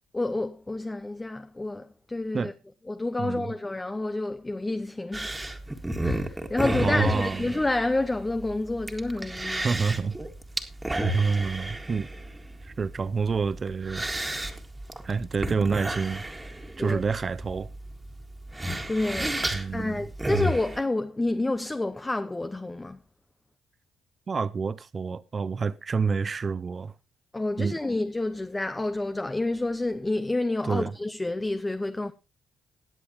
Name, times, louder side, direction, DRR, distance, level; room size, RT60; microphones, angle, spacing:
voice 1, 0.1-2.5 2.9-5.3 6.0-9.7 16.8-17.0 18.9-23.0 27.3-32.1, left 2 dB, 15° left, 0.7 m, -29 dB
sound 1, 5.1-20.8, right 1 dB, 15° right, 1.8 m, -32 dB
voice 2, 6.8-7.4 9.6-10.2 11.1-12.1 12.6-14.1 15.0-16.2 16.8-17.7 19.5-20.0 24.3-26.9 27.6-27.8 30.6-30.9, right 5 dB, 35° right, 0.5 m, -28 dB
19.5 x 7.9 x 3.0 m
cardioid pair, 90°, 0 cm